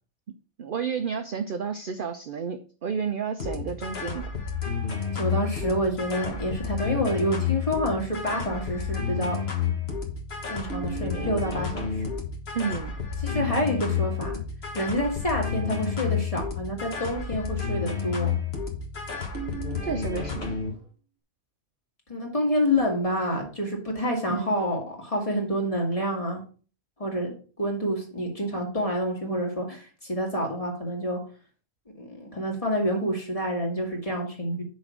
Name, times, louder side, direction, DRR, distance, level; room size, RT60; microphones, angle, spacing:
voice 1, 0.6-4.3 12.5-12.9 19.8-20.7 24.3-24.6, right 6 dB, 55° right, 8 dB, 0.6 m, -31 dB
sound 1, 3.4-20.7, left 6 dB, 50° left, 1.5 m, -30 dB
voice 2, 5.1-9.4 10.4-12.0 13.2-14.4 14.7-18.3 22.1-26.4 27.0-27.3 27.6-31.2 32.0-34.6, equal, 25° left, 0 dB, 2.1 m, -28 dB
6.2 x 4.1 x 6.2 m, 0.39 s
omnidirectional pair, 1.4 m